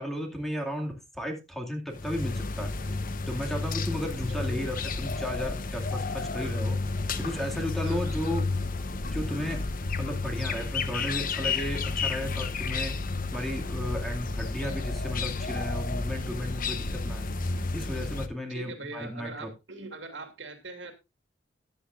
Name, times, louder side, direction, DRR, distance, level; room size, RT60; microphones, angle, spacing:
voice 1, 0.0-2.7 3.3-6.8 7.2-8.5 9.1-9.7 10.0-12.9 13.3-17.3 17.7-19.5, equal, ahead, 2 dB, 2.4 m, -34 dB
sound 1, 1.9-18.3, left 3 dB, 50° left, 1.0 m, -31 dB
voice 2, 7.8-8.2 18.5-20.9, right 3 dB, 85° right, 5 dB, 2.8 m, -41 dB
14.5 x 10.0 x 2.6 m, 0.25 s
head